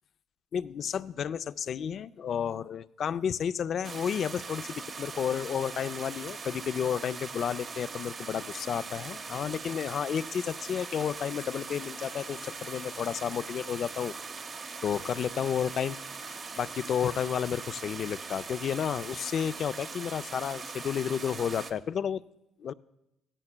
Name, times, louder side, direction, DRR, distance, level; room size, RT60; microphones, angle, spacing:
voice 1, 0.5-14.1 14.8-22.2 22.6-22.7, left 8 dB, 55° left, 15 dB, 0.3 m, -32 dB
sound 1, 3.8-21.7, right 4 dB, 40° right, 0.8 m, -41 dB
16.5 x 14.0 x 2.2 m, 0.85 s
cardioid pair, 95°, 0 cm